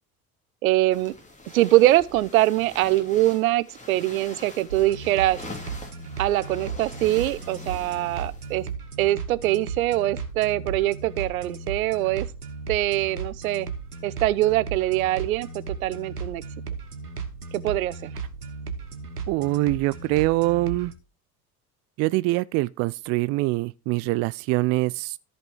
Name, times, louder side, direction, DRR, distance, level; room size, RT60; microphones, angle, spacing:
voice 1, 0.6-1.1 1.5-5.4 6.2-8.7 9.0-12.3 12.7-13.7 14.0-16.4 17.5-18.1, right 16 dB, 65° right, 0.8 m, -23 dB
sound 1, 0.9-8.7, left 2 dB, 15° left, 3.2 m, -44 dB
sound 2, 4.7-20.9, right 5 dB, 85° right, 1.2 m, -36 dB
voice 2, 19.3-20.9 22.0-25.2, right 20 dB, 35° right, 0.4 m, -24 dB
14.0 x 5.3 x 4.5 m
figure-of-eight pair, 65°, 45 cm